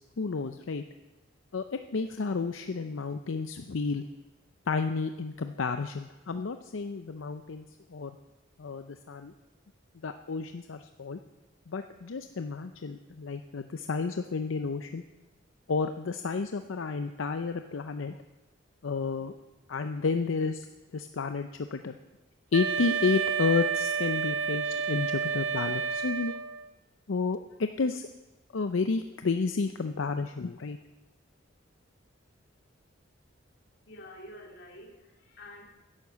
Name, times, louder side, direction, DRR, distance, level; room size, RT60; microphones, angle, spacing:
voice 1, 0.2-0.8 1.5-4.0 4.7-7.6 7.9-8.2 8.6-9.3 10.0-11.2 11.7-15.0 15.7-18.1 18.8-19.3 19.7-20.7 20.9-22.0 22.5-26.3 27.1-28.1 28.5-30.8, left 4 dB, 80° left, 8 dB, 0.6 m, -31 dB
Wind instrument woodwind instrument, 22.5-26.7, right 6 dB, 80° right, 0.5 m, -30 dB
voice 2, 33.5-35.6, left 1 dB, 55° left, 1 dB, 2.4 m, -49 dB
11.0 x 10.5 x 7.1 m, 1.1 s
head